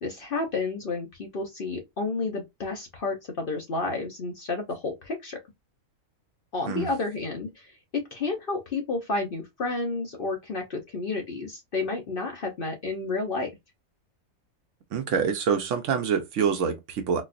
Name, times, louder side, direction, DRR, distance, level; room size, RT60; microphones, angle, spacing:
voice 1, 0.0-5.4 6.5-7.7 8.1-13.5, left 3 dB, 50° left, 0.7 m, -31 dB
voice 2, 14.9-17.2, right 6 dB, 65° right, 0.9 m, -26 dB
4.1 x 2.3 x 2.4 m
omnidirectional pair, 1.5 m